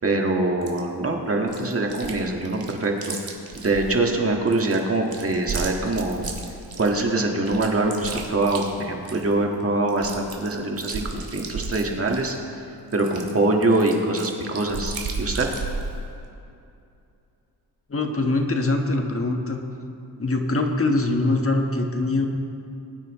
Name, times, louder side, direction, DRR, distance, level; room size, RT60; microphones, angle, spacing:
voice 1, 0.0-3.1 3.6-6.3 6.8-12.4 12.9-15.5, right 2 dB, 35° right, 1 dB, 1.7 m, -24 dB
Chewing mastication, 0.6-0.8 1.5-2.2 2.4-3.9 4.5-7.0 7.5-9.3 9.6-9.7 9.9-12.4 12.9-15.9, right 4 dB, 60° right, 1.8 m, -33 dB
voice 2, 17.9-19.6 20.2-22.3, left 2 dB, 35° left, 3 dB, 1.4 m, -23 dB
21.0 x 9.2 x 3.1 m, 2.6 s
cardioid pair, 75°, 40 cm